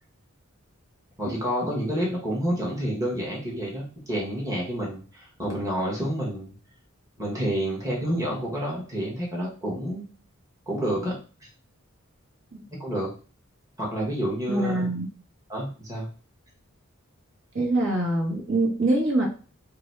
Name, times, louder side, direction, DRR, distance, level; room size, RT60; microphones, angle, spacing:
voice 1, 1.2-6.5 7.2-10.1 10.7-11.1 11.4-11.5 12.7-13.1 13.8-14.9 15.5-16.1, equal, 15° right, -4 dB, 1.2 m, -29 dB
voice 2, 14.5-15.1 17.5-19.3, right 2 dB, 65° right, -2 dB, 1.5 m, -24 dB
3.9 x 2.7 x 4.5 m, 0.37 s
head